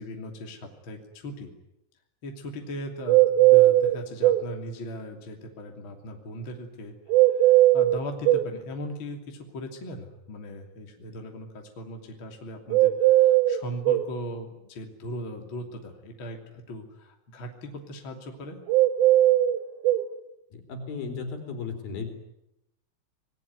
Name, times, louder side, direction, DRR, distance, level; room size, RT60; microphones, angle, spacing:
voice 1, 0.0-1.5 2.2-7.0 7.3-18.6, equal, 30° left, 2 dB, 2.8 m, -39 dB
sound 1, 3.1-4.5 7.1-8.5 12.7-14.1 18.7-20.1, right 15 dB, 70° right, 2.3 m, -19 dB
voice 2, 20.5-22.1, left 5 dB, 50° left, 5 dB, 5.4 m, -35 dB
27.0 x 21.0 x 9.6 m, 0.84 s
omnidirectional pair, 6.0 m